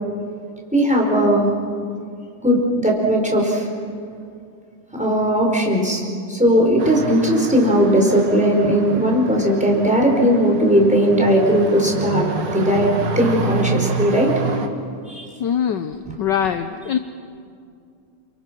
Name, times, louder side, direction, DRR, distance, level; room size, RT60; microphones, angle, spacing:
voice 1, 0.7-1.5 2.4-3.6 4.9-6.0 6.3-12.3 12.5-14.3 15.1-15.3 16.1-16.2, equal, 5° right, 0 dB, 4.8 m, -17 dB
sound 1, 6.8-14.7, right 4 dB, 80° right, 2.6 m, -28 dB
voice 2, 15.4-17.0, left 8 dB, 65° left, 9 dB, 1.3 m, -23 dB
30.0 x 27.5 x 6.3 m, 2.4 s
omnidirectional pair, 2.4 m